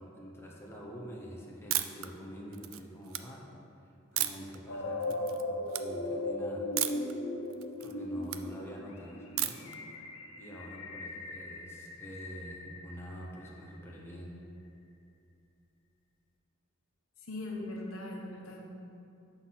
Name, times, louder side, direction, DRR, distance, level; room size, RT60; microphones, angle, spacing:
voice 1, 0.0-3.5 3.8-6.7 7.8-9.8 10.4-14.4, equal, 10° left, -2 dB, 0.8 m, -46 dB
sound 1, 1.7-2.1 2.5-3.2 4.2-4.6 5.0-5.4 5.7-5.8 6.8-7.1 7.5-8.4 9.4-9.8, right 13 dB, 70° right, 0.3 m, -33 dB
sound 2, 4.7-13.6, left 2 dB, 70° left, 0.6 m, -38 dB
voice 2, 17.2-18.7, left 1 dB, 90° left, -1 dB, 1.0 m, -40 dB
5.9 x 4.0 x 5.8 m, 2.7 s
head